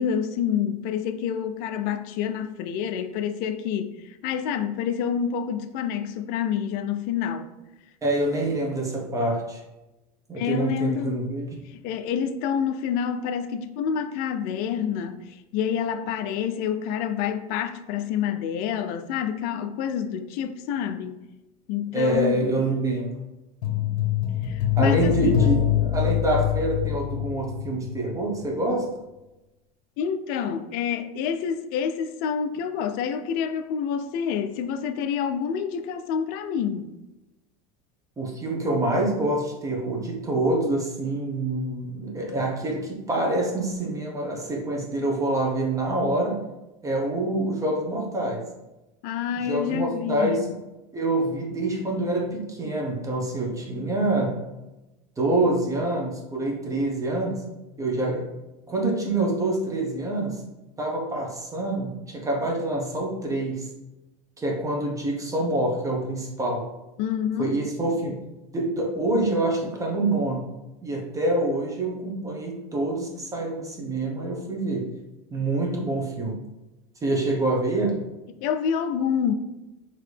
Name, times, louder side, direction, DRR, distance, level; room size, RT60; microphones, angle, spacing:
voice 1, 0.0-7.5 10.3-11.2 11.7-21.2 21.7-22.5 24.4-25.4 30.0-36.9 49.0-50.5 67.0-67.6 78.4-79.3, left 8 dB, 55° left, 0.4 m, -28 dB
voice 2, 8.0-9.6 10.3-11.5 21.9-23.1 24.8-28.9 38.2-46.4 46.8-48.4 49.5-50.5 50.9-54.4 55.2-57.4 57.8-58.3 58.7-60.4 60.8-63.7 64.4-66.6 67.4-68.2 68.5-70.5 70.8-74.9 75.3-76.4 77.0-78.0, right 2 dB, 15° right, 1.0 m, -26 dB
sound 1, 23.6-28.1 28.3-28.4, left 10 dB, 75° left, 0.8 m, -24 dB
4.7 x 2.9 x 3.3 m
supercardioid pair, 120°, 19 cm